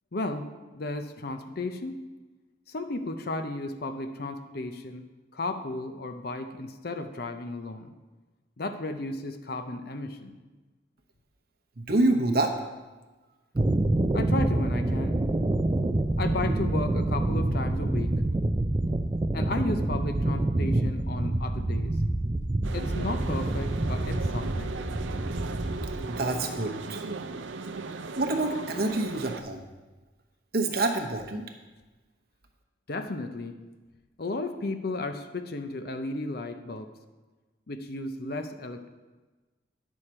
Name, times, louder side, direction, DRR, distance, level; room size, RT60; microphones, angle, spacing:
voice 1, 0.1-2.1 2.7-7.9 8.6-10.4 14.1-15.2 16.2-18.2 19.3-22.0 22.7-24.7 32.9-33.6 34.2-36.9 37.7-38.9, left 2 dB, 55° left, 8 dB, 0.6 m, -34 dB
voice 2, 11.8-12.5 26.1-27.0 28.2-29.6 30.5-31.4, right 2 dB, 50° right, 4 dB, 0.9 m, -27 dB
sound 1, 13.6-26.1, right 1 dB, 20° right, 0.4 m, -27 dB
sound 2, 22.6-29.4, right 3 dB, 80° right, 0.5 m, -37 dB
9.8 x 6.4 x 4.3 m, 1.2 s
head